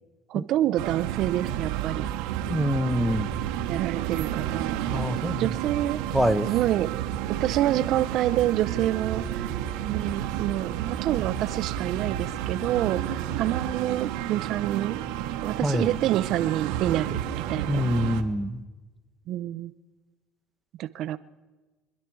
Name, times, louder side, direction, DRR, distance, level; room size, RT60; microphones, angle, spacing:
voice 1, 0.3-2.1 3.7-4.8 5.4-6.0 6.5-7.0 7.3-9.6 9.8-15.0 15.4-17.2 17.5-17.8 19.3-19.7 20.8-21.2, right 13 dB, 60° right, 12 dB, 0.5 m, -27 dB
sound 1, 0.8-18.2, right 11 dB, 80° right, 1.0 m, -31 dB
voice 2, 2.5-3.3 4.9-5.5 6.1-6.5 15.6-15.9 17.6-18.6, equal, ahead, 12 dB, 0.8 m, -25 dB
25.5 x 10.5 x 4.6 m, 1.2 s
supercardioid pair, 95°, 0 cm